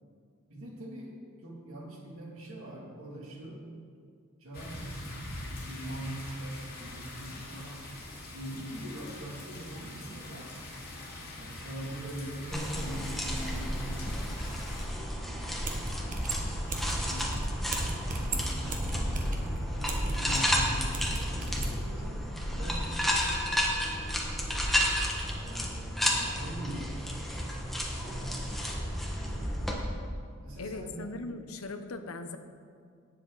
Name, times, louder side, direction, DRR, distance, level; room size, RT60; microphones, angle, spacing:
voice 1, 0.5-3.7 4.4-4.8 5.6-7.8 8.3-10.9 11.4-15.5 16.2-16.6 16.9-17.4 17.7-23.7 24.0-24.1 25.4-29.5 30.4-31.4, right 1 dB, 70° right, -2 dB, 2.5 m, -43 dB
sound 1, 4.5-14.9, left 1 dB, 45° left, 2.5 m, -43 dB
sound 2, 12.5-29.7, equal, ahead, 1.4 m, -32 dB
sound 3, 15.4-15.5 15.6-21.8, right 1 dB, 40° right, 1.4 m, -34 dB
voice 2, 30.6-32.4, left 3 dB, 75° left, 8 dB, 0.8 m, -39 dB
18.5 x 7.5 x 4.0 m, 2.2 s
head